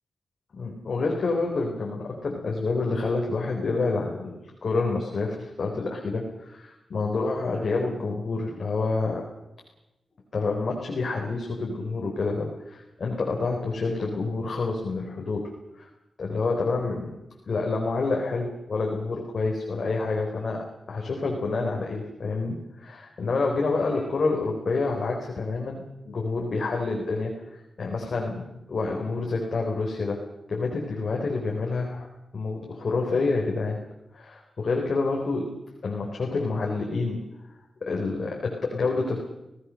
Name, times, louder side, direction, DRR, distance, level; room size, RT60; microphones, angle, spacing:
voice 1, 0.5-9.3 10.3-15.9 16.2-17.2 17.5-32.1 32.3-33.8 34.1-37.2 37.8-39.2, left 3 dB, 60° left, 0 dB, 4.3 m, -28 dB
29.5 x 18.0 x 6.5 m, 0.95 s
wide cardioid pair, 90°, 0 cm